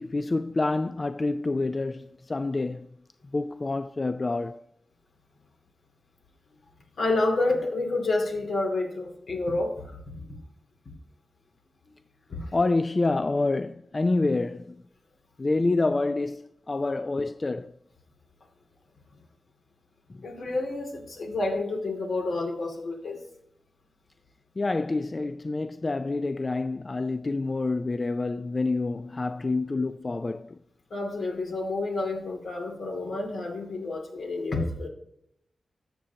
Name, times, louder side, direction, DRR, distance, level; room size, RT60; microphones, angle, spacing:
voice 1, 0.0-2.9 3.3-4.6 12.5-14.8 15.4-17.7 20.1-20.2 24.6-30.6, left 3 dB, 35° left, 0.3 m, -27 dB
voice 2, 7.0-10.0 10.3-10.4 12.3-12.6 20.2-23.2 30.9-34.9, left 2 dB, 75° left, 2.5 m, -29 dB
13.0 x 7.6 x 2.9 m
wide cardioid pair, 95°, 0 cm